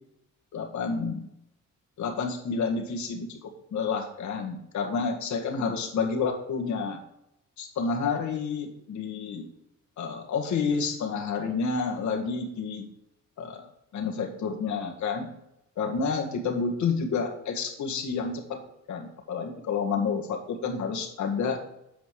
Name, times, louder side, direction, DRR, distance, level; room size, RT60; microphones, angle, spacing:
voice 1, 0.5-1.3 2.0-7.0 7.6-9.5 10.0-12.9 13.4-13.7 13.9-15.3 15.8-18.6 18.9-21.6, left 5 dB, 70° left, 2 dB, 1.8 m, -29 dB
8.2 x 5.1 x 4.8 m, 0.82 s
cardioid pair, 90°, 30 cm